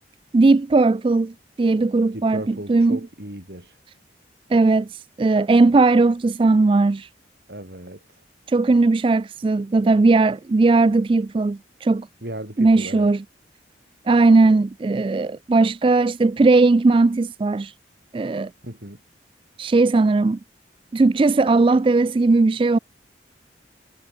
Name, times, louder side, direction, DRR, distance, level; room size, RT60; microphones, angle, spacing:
voice 1, 0.3-3.0 4.5-7.1 8.5-12.1 12.6-13.2 14.1-17.7 18.1-18.5 19.6-20.4 20.9-22.8, right 3 dB, 30° right, 0.3 m, -18 dB
voice 2, 2.1-3.7 7.5-8.0 12.2-13.1 18.6-19.0, right 1 dB, 60° right, 5.1 m, -35 dB
head